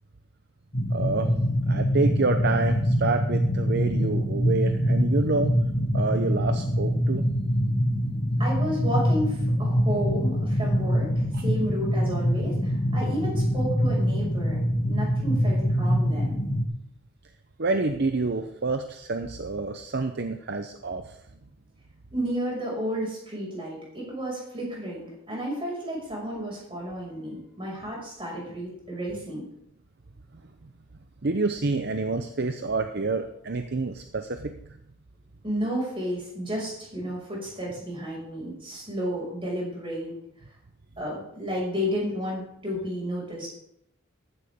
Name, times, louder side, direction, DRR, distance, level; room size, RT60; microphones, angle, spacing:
sound 1, 0.7-16.6, equal, 30° left, 1.7 m, -24 dB
voice 1, 0.9-1.3 1.7-5.5 5.9-7.2 11.3-11.4 12.9-13.2 17.6-21.2 31.2-34.5, right 3 dB, 50° right, 7 dB, 0.7 m, -28 dB
voice 2, 8.4-14.6 14.8-16.4 22.1-29.5 35.4-40.1 41.0-43.5, equal, 25° right, -3 dB, 6.0 m, -32 dB
15.0 x 11.0 x 3.7 m, 0.76 s
head